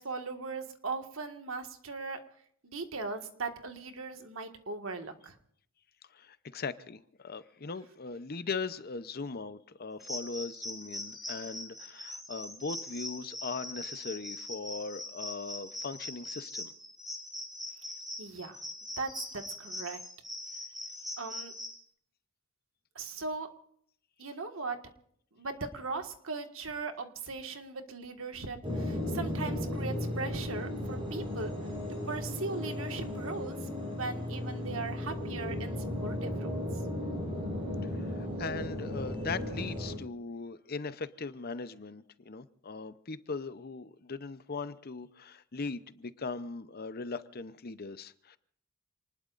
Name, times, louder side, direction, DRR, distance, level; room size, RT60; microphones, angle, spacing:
voice 1, 0.0-2.2 2.6-5.4 18.2-18.6 19.0-20.0 21.2-21.5 22.9-23.5 24.2-24.8 25.3-31.5 32.1-36.6, right 3 dB, 70° right, 5 dB, 1.8 m, -39 dB
voice 2, 6.1-16.7 37.9-48.4, left 4 dB, 45° left, 13 dB, 0.7 m, -39 dB
sound 1, 10.0-21.8, left 1 dB, ahead, 3.6 m, -41 dB
sound 2, 28.6-40.0, left 1 dB, 25° right, 7.6 m, -35 dB
28.0 x 20.0 x 2.6 m, 0.64 s
head